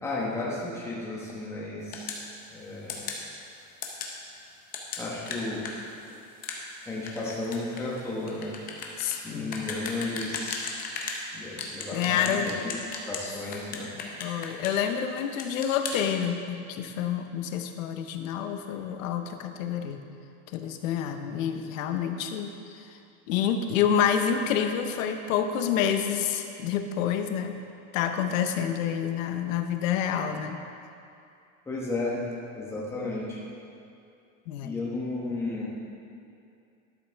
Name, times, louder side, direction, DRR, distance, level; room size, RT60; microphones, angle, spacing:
voice 1, 0.0-2.2 2.5-3.1 5.0-5.7 5.9-6.1 6.9-8.8 9.1-10.7 11.3-12.7 13.1-13.9 31.7-32.2 32.5-33.4 34.6-35.7, left 2 dB, 5° left, -5 dB, 1.0 m, -34 dB
sound 1, 1.9-2.2 2.9-3.2 3.8-4.1 4.7-11.2 11.6-13.2 13.5-14.9 15.2-16.0, left 5 dB, 20° left, 0.6 m, -36 dB
voice 2, 9.0-9.5 11.9-12.5 14.2-20.0 20.5-22.5 22.7-22.9 23.3-27.6 27.9-30.6 34.5-34.7, left 8 dB, 85° left, 6 dB, 0.8 m, -28 dB
12.0 x 6.8 x 3.4 m, 2.5 s
supercardioid pair, 175°, 39 cm